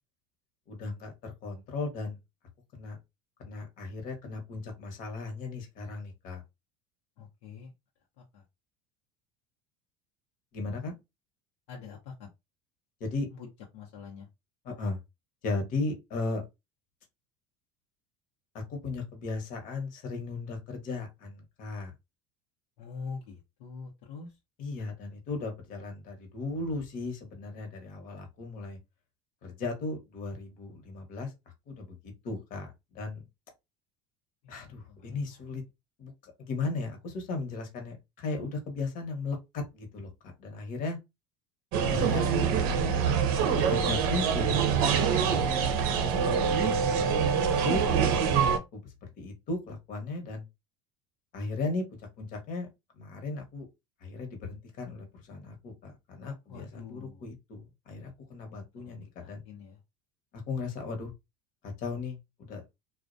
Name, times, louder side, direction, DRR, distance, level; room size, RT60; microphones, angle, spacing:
voice 1, 0.7-2.2 2.7-3.0 3.4-6.4 10.5-10.9 13.0-13.3 14.6-15.0 15.4-16.4 18.5-21.9 24.6-28.8 29.4-31.3 31.7-32.0 32.2-33.2 34.5-35.6 36.0-40.1 40.4-41.0 41.9-42.5 43.5-45.5 46.0-48.4 48.7-48.8 49.2-50.4 51.3-51.8 52.2-52.7 53.0-53.7 54.0-59.4 60.3-61.1 61.6-62.6, left 3 dB, 55° left, 1.0 m, -36 dB
voice 2, 7.2-7.7 11.7-12.0 13.7-14.3 22.8-24.3 34.4-34.7 35.0-35.2 56.5-57.2 59.2-59.7, left 5 dB, 75° left, 0.7 m, -44 dB
sound 1, 41.7-48.6, right 6 dB, 65° right, 0.6 m, -25 dB
2.4 x 2.1 x 2.5 m
supercardioid pair, 100°, 17 cm